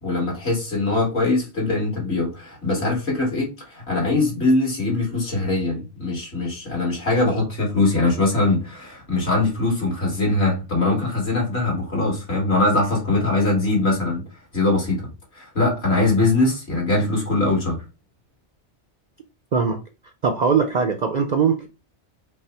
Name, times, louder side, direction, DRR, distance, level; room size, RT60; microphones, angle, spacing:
voice 1, 0.0-14.2 14.5-15.0 15.3-17.8, left 2 dB, 65° left, 2.5 m, -22 dB
voice 2, 19.5-19.8 20.2-21.7, right 6 dB, 55° right, 0.5 m, -20 dB
5.3 x 2.1 x 4.5 m
omnidirectional pair, 1.2 m